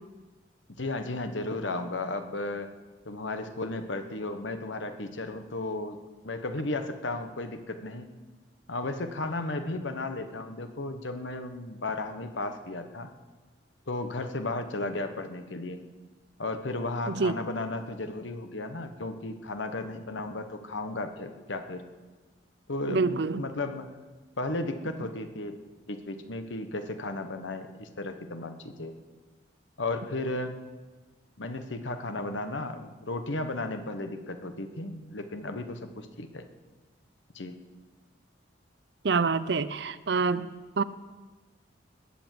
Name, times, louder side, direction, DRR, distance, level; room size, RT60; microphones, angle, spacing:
voice 1, 0.8-2.7 3.0-6.0 6.2-8.1 8.7-13.1 13.9-15.8 16.4-21.9 22.7-23.9 24.4-25.6 25.9-28.9 29.8-30.6 31.4-36.4 37.3-37.6, left 2 dB, 85° left, 8 dB, 1.3 m, -34 dB
voice 2, 22.9-23.4 39.0-40.5 40.8-40.9, right 4 dB, 65° right, 15 dB, 0.6 m, -26 dB
20.0 x 7.1 x 7.8 m, 1.3 s
head